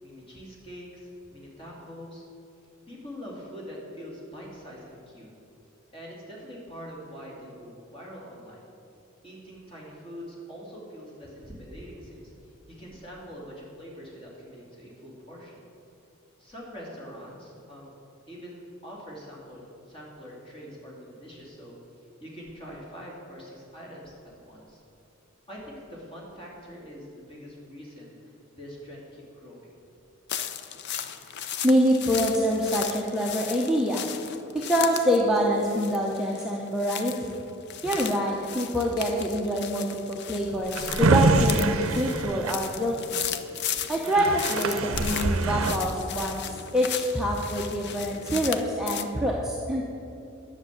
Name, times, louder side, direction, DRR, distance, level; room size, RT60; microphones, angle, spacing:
voice 1, 0.0-2.2 2.9-5.3 5.9-8.6 9.2-12.3 12.7-15.6 16.4-17.9 18.3-19.6 19.9-21.8 22.2-24.8 25.5-29.7, equal, 25° left, -4 dB, 2.7 m, -44 dB
sound 1, 30.3-49.0, left 9 dB, 50° left, 0.5 m, -36 dB
voice 2, 31.6-34.0 34.5-37.4 37.8-43.2 43.9-46.4 46.7-49.8, equal, ahead, -3 dB, 0.8 m, -25 dB
Drawer open or close, 40.5-43.3 43.8-43.9 44.0-45.8, right 3 dB, 70° right, 0.6 m, -25 dB
10.5 x 6.7 x 8.5 m, 2.7 s
head